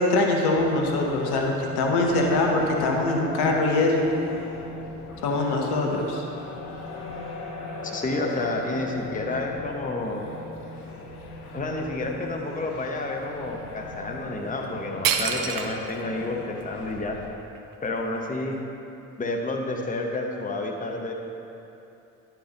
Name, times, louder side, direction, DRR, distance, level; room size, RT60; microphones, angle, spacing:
voice 1, 0.0-4.1 5.2-6.3, left 2 dB, 60° left, 1 dB, 1.1 m, -23 dB
sound 1, 0.6-17.3, left 3 dB, 85° left, 0.8 m, -38 dB
voice 2, 7.9-10.2 11.5-17.2 17.8-18.6 19.2-21.1, left 2 dB, 20° left, 1 dB, 1.0 m, -30 dB
sound 2, 14.6-14.7 15.0-16.0 16.6-16.7 17.2-18.6, right 8 dB, 50° right, 0.7 m, -28 dB
11.0 x 4.5 x 3.9 m, 2.8 s
hypercardioid pair, 55°, 42 cm